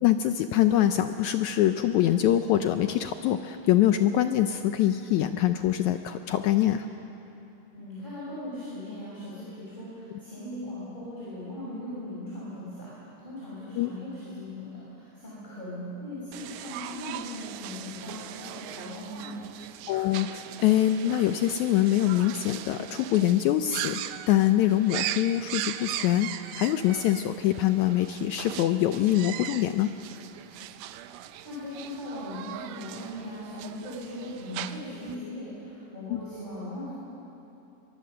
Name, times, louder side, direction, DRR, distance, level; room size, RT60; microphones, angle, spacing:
voice 1, 0.0-6.9 13.8-13.9 19.9-29.9, left 12 dB, 80° left, 8 dB, 1.7 m, -24 dB
voice 2, 7.7-19.4 31.4-36.9, left 1 dB, 15° left, -8 dB, 6.1 m, -39 dB
sound 1, 16.3-35.1, right 12 dB, 80° right, 2.2 m, -39 dB
23.5 x 23.0 x 6.7 m, 2.9 s
omnidirectional pair, 3.9 m